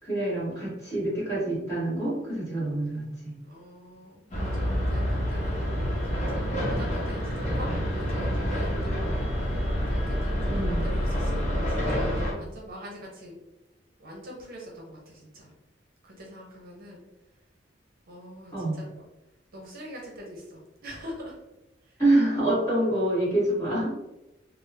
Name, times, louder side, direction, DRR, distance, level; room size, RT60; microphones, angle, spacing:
voice 1, 0.0-3.3 10.5-10.8 18.5-18.8 22.0-23.9, right 1 dB, 20° left, -9 dB, 1.4 m, -26 dB
voice 2, 3.4-5.7 6.1-13.4 14.0-15.5 16.0-17.0 18.1-19.0 19.5-21.4 21.8-22.0, equal, 50° right, -2 dB, 0.7 m, -44 dB
sound 1, 4.3-12.3, equal, 35° left, 0.9 m, -27 dB
3.4 x 2.0 x 2.6 m, 0.94 s
head